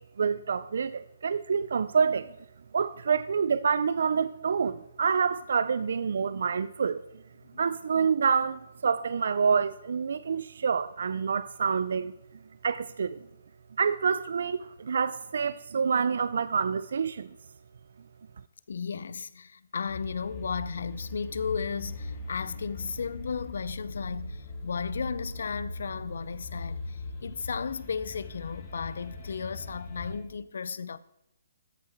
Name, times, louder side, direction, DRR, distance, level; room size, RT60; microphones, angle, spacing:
voice 1, 0.0-2.3 2.7-7.0 7.6-12.1 12.6-13.2 13.8-17.3, right 6 dB, 65° right, 0.4 m, -27 dB
voice 2, 18.7-31.0, left 6 dB, 70° left, 0.6 m, -34 dB
sound 1, 19.9-30.2, left 2 dB, 35° left, 2.1 m, -40 dB
13.5 x 5.6 x 4.4 m
hypercardioid pair, 160°, 0 cm